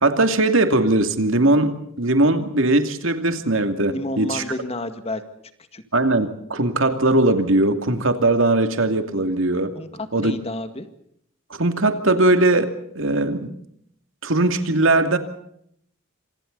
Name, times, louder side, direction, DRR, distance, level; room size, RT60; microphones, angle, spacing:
voice 1, 0.0-4.4 5.9-9.7 10.1-10.3 11.5-13.5 14.2-15.2, right 2 dB, 65° right, 7 dB, 2.5 m, -19 dB
voice 2, 3.9-5.2 5.7-5.8 9.8-10.9, left 2 dB, 30° left, 9 dB, 2.1 m, -30 dB
27.5 x 27.0 x 4.1 m, 0.70 s
head